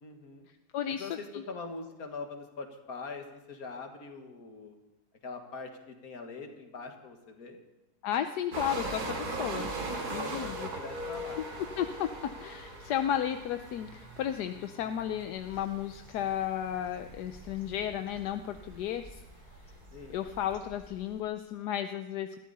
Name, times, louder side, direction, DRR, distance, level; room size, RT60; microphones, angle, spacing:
voice 1, 0.0-0.5 0.9-4.8 5.2-7.6 10.1-11.4 19.9-20.2, left 4 dB, 65° left, 4 dB, 2.2 m, -42 dB
voice 2, 0.7-1.4 8.0-9.7 10.1-10.7 11.8-19.2 20.1-22.4, left 10 dB, 85° left, 8 dB, 1.3 m, -33 dB
sound 1, 8.5-20.5, right 2 dB, 75° right, 2.8 m, -40 dB
sound 2, 15.3-21.2, equal, 25° left, 2.0 m, -54 dB
21.0 x 14.0 x 4.1 m, 1.1 s
omnidirectional pair, 1.7 m